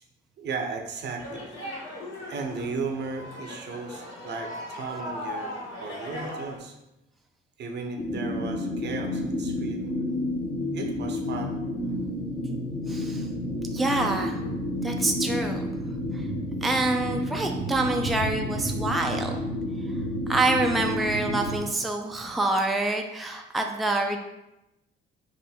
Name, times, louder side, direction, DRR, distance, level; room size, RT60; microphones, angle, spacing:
voice 1, 0.4-1.5 2.3-6.7 7.6-9.9 10.7-11.6 18.1-18.2 18.7-18.9, right 4 dB, 60° right, 4 dB, 0.7 m, -35 dB
sound 1, 1.2-6.6, left 1 dB, 75° left, 1.3 m, -38 dB
sound 2, 8.0-21.6, left 1 dB, 50° left, 1.0 m, -30 dB
voice 2, 12.9-13.3 13.7-14.4 14.8-15.7 16.1-16.3 16.6-19.3 20.3-24.2, right 2 dB, ahead, 2 dB, 0.4 m, -26 dB
3.4 x 2.5 x 4.3 m, 0.92 s
cardioid pair, 90°, 20 cm